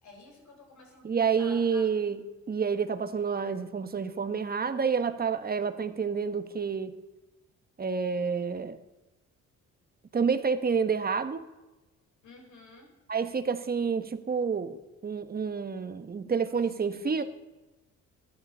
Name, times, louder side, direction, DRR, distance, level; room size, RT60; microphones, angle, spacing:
voice 1, 0.0-1.9 12.2-12.9 16.5-17.2, left 2 dB, 70° left, 3 dB, 4.2 m, -52 dB
voice 2, 1.0-2.2 2.5-7.0 7.8-8.8 10.1-11.5 13.1-17.2, right 6 dB, 30° right, 9 dB, 1.2 m, -29 dB
13.5 x 11.5 x 5.6 m, 1.1 s
cardioid pair, 90°, 30 cm